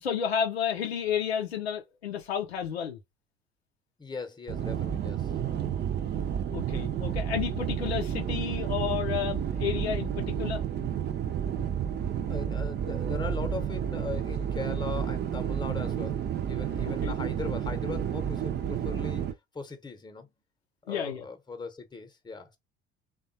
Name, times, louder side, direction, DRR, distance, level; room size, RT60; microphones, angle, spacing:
voice 1, 0.0-3.0 6.1-10.6 16.8-17.2 20.9-21.2, left 8 dB, 90° left, 0.6 m, -31 dB
voice 2, 4.0-5.3 12.3-16.2 16.5-20.3 20.9-22.6, left 4 dB, 15° left, 0.9 m, -39 dB
sound 1, 4.5-19.3, right 9 dB, 35° right, 0.6 m, -31 dB
3.5 x 2.3 x 2.7 m
hypercardioid pair, 65°, 31 cm